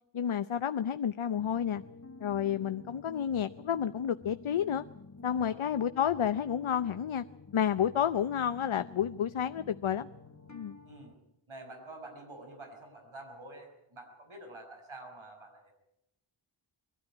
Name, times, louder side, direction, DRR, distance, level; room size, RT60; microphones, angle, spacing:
voice 1, 0.1-1.8 2.2-4.8 5.2-7.2 7.5-10.1 10.5-10.7, left 9 dB, 75° left, 12 dB, 0.7 m, -30 dB
sound 1, 1.4-11.1, left 3 dB, 35° left, 1.7 m, -51 dB
voice 2, 5.3-5.6 10.9-11.1 11.5-15.7, right 2 dB, 75° right, 3 dB, 6.1 m, -48 dB
23.0 x 13.0 x 9.8 m, 0.81 s
wide cardioid pair, 50°, 49 cm